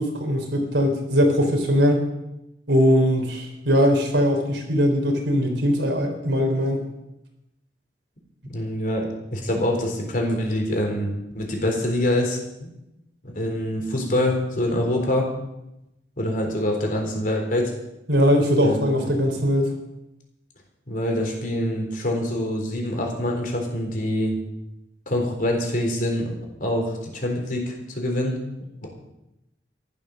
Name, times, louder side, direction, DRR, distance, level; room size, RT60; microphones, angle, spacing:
voice 1, 0.0-2.0 2.7-6.8 18.1-19.7, equal, 75° right, 3 dB, 3.6 m, -20 dB
voice 2, 8.5-12.7 13.2-15.3 16.2-17.7 18.6-19.2 20.9-24.4 25.1-26.3 26.6-28.4 28.8-28.9, left 1 dB, 50° left, 2 dB, 3.8 m, -25 dB
14.0 x 12.0 x 6.4 m, 0.91 s
head